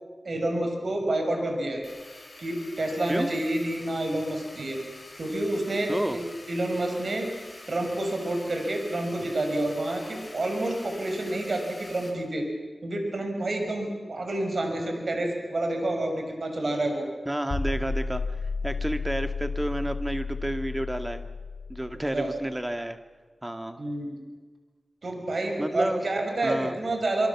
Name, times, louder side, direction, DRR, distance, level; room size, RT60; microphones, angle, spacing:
voice 1, 0.2-1.8 2.4-4.8 5.1-6.2 6.5-7.3 7.7-12.4 12.8-17.1 22.1-22.3 23.8-24.2 25.0-27.3, right 1 dB, 65° right, 3 dB, 6.2 m, -28 dB
sound 1, 1.8-12.1, left 2 dB, 30° left, 6.4 m, -46 dB
voice 2, 17.3-18.2 18.6-21.2 21.7-23.0 23.4-23.8 25.6-26.0 26.4-26.8, right 1 dB, 20° right, 8 dB, 2.0 m, -30 dB
sound 2, 17.5-22.5, left 4 dB, 65° left, 2.8 m, -32 dB
26.0 x 24.0 x 7.2 m, 1.4 s
cardioid pair, 50°, 0 cm